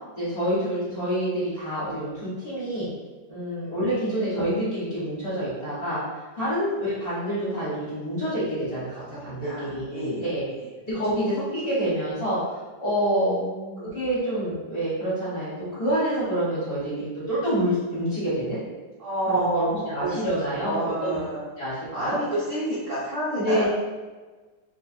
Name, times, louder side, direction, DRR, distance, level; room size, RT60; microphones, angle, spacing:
voice 1, 0.1-2.9 3.3-10.4 10.9-13.4 13.8-18.6 19.3-21.2 21.6-22.2 23.4-23.7, right 1 dB, 35° left, -10 dB, 1.1 m, -27 dB
voice 2, 9.4-10.3 10.6-10.7 13.1-14.0 19.0-20.2 20.6-21.4 21.9-23.6, right 1 dB, 55° right, -10 dB, 0.9 m, -29 dB
3.4 x 3.1 x 2.6 m, 1.3 s
omnidirectional pair, 2.1 m